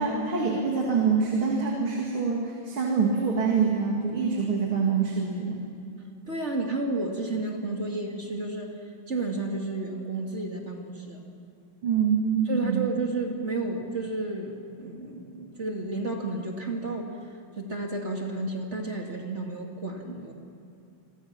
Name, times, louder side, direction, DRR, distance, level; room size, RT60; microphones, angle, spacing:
voice 1, 0.0-5.6 11.8-12.9, right 5 dB, 85° right, -1 dB, 3.3 m, -25 dB
voice 2, 6.3-8.8 9.1-11.2 12.5-17.2 17.6-20.3, right 2 dB, 35° right, 1 dB, 2.7 m, -32 dB
29.0 x 23.0 x 6.0 m, 2.7 s
omnidirectional pair, 2.3 m